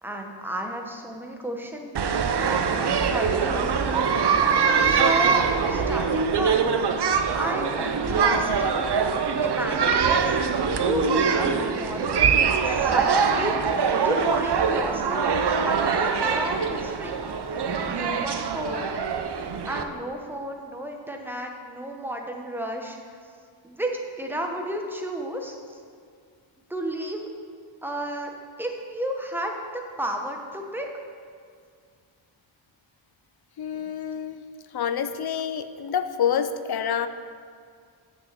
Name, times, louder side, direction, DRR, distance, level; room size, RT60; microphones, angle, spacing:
voice 1, 0.0-2.0 3.1-3.7 4.8-6.7 7.3-8.9 9.4-10.4 10.8-17.3 17.8-18.9 19.3-23.0 23.6-25.5 26.7-27.3 27.8-28.3 28.6-29.5 30.0-30.9 33.7-33.9, right 1 dB, 5° right, 2 dB, 0.8 m, -32 dB
sound 1, 1.9-19.8, right 6 dB, 55° right, 0.6 m, -23 dB
voice 2, 33.6-34.4 34.7-37.1, left 8 dB, 55° left, 11 dB, 0.5 m, -27 dB
6.2 x 6.0 x 7.3 m, 2.2 s
wide cardioid pair, 120°, 48 cm